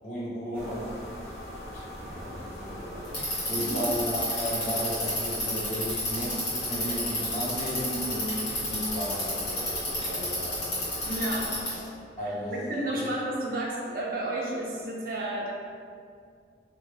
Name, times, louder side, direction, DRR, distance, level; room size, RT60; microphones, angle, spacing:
voice 1, 0.0-0.9 1.7-10.7 12.2-13.1, equal, 45° left, -9 dB, 1.1 m, -34 dB
sound 1, 0.5-11.6, left 1 dB, 15° left, 1.1 m, -41 dB
Bicycle, 3.0-11.9, left 1 dB, 85° left, 1.3 m, -30 dB
voice 2, 11.0-11.5 12.2-15.5, right 1 dB, 50° right, -4 dB, 0.5 m, -32 dB
2.9 x 2.8 x 3.1 m, 2.2 s
head